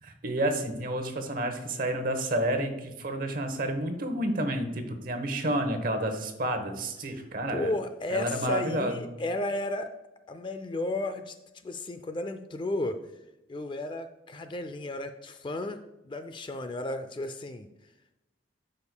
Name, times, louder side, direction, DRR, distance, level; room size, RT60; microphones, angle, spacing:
voice 1, 0.0-7.7 8.1-9.0, right 1 dB, 45° right, 7 dB, 0.9 m, -30 dB
voice 2, 7.5-9.9 10.3-11.3 11.6-13.0 13.5-15.8 16.0-17.7, left 2 dB, 25° left, 9 dB, 0.3 m, -33 dB
12.5 x 5.4 x 2.2 m, 0.96 s
head